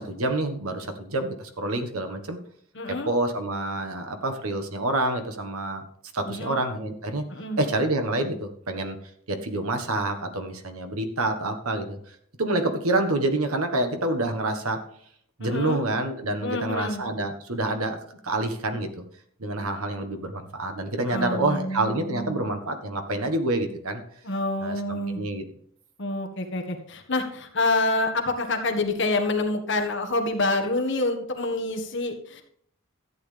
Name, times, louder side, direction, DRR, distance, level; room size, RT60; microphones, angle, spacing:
voice 1, 0.0-2.4 3.1-5.8 6.1-7.2 7.6-9.0 9.3-14.8 15.4-18.0 18.2-19.0 19.4-24.0 24.6-25.4, right 2 dB, 80° right, 6 dB, 1.5 m, -27 dB
voice 2, 2.7-3.1 6.3-6.6 7.3-7.6 15.4-15.8 16.4-17.0 21.1-22.5 24.2-25.3 26.0-32.4, left 2 dB, 55° left, 4 dB, 1.5 m, -27 dB
13.5 x 9.0 x 3.4 m, 0.66 s
head